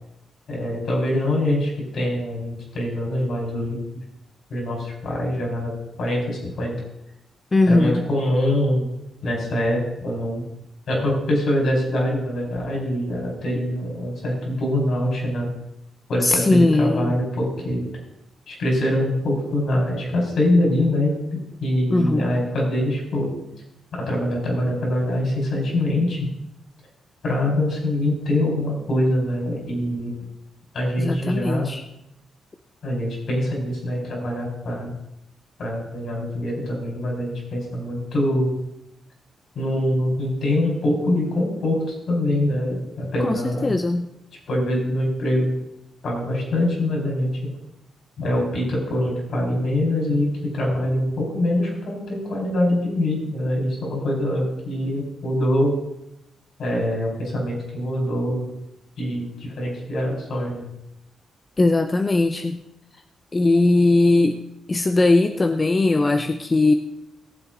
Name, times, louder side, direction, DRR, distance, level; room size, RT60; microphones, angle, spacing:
voice 1, 0.5-4.0 4.5-5.7 6.0-6.7 7.7-8.9 9.2-10.5 10.9-15.5 16.1-17.8 18.5-23.3 23.9-26.3 27.2-30.1 30.7-31.7 32.8-34.9 35.6-38.5 39.5-43.7 44.5-45.5 46.0-47.5 48.2-55.8 56.6-58.5 59.0-60.6, left 1 dB, 70° left, -2 dB, 4.7 m, -24 dB
voice 2, 7.5-8.0 16.2-17.1 21.9-22.3 31.0-31.8 43.2-44.1 61.6-62.6 63.3-64.4 64.7-66.7, left 2 dB, 25° left, 6 dB, 0.6 m, -19 dB
18.0 x 7.6 x 3.9 m, 0.82 s
cardioid pair, 105°, 0 cm